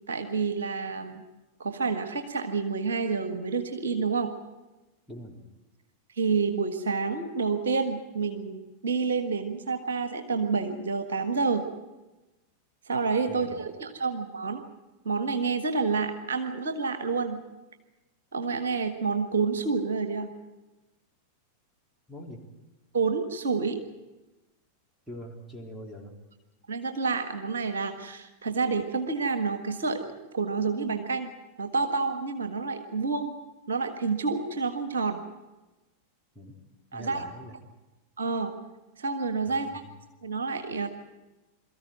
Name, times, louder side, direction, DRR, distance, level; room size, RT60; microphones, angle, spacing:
voice 1, 0.1-1.2 1.6-4.3 6.2-11.7 12.9-14.6 15.0-17.4 18.3-20.3 22.9-23.8 26.7-30.1 30.3-31.3 31.6-33.3 33.7-35.2 36.9-37.2 38.2-38.5 39.0-39.7 40.2-40.9, right 4 dB, 65° right, 7 dB, 1.6 m, -28 dB
voice 2, 5.1-5.4 13.3-13.6 22.1-22.4 25.1-26.1 36.3-36.6 36.9-37.6 39.5-39.9, equal, 5° right, 1 dB, 3.7 m, -43 dB
23.0 x 14.0 x 9.2 m, 1.1 s
figure-of-eight pair, 90°, 0 cm